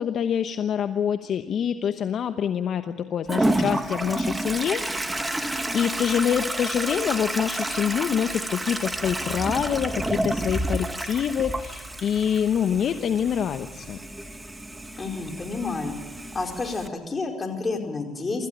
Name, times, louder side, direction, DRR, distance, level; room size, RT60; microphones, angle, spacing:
voice 1, 0.0-14.0, left 8 dB, 55° left, 9 dB, 1.0 m, -26 dB
Toilet flush, 3.3-16.9, right 1 dB, 10° right, 1.8 m, -30 dB
voice 2, 15.0-16.0 16.3-18.5, left 3 dB, 25° left, 3 dB, 4.7 m, -30 dB
25.5 x 15.0 x 9.0 m, 1.2 s
supercardioid pair, 80°, 0 cm